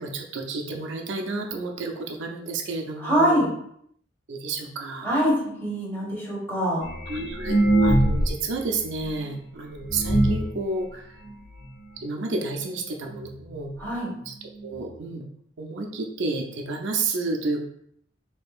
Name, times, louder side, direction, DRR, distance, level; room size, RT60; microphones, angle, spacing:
voice 1, 0.0-3.5 4.3-5.1 7.1-11.1 12.0-13.7 14.3-14.4 14.6-15.2 15.6-17.6, right 3 dB, 85° right, 1 dB, 0.6 m, -31 dB
voice 2, 3.0-3.5 5.0-6.8 13.8-14.1, equal, 10° left, -6 dB, 1.4 m, -24 dB
sound 1, 6.8-8.5 8.8-8.9 9.4-9.5 9.9-10.5 11.3-11.4 11.6-11.7 12.0-12.3 13.1-13.2 13.5-13.6 14.2-14.3 14.6-14.7, right 1 dB, 70° left, 1.1 m, -22 dB
4.3 x 3.0 x 2.4 m, 0.70 s
head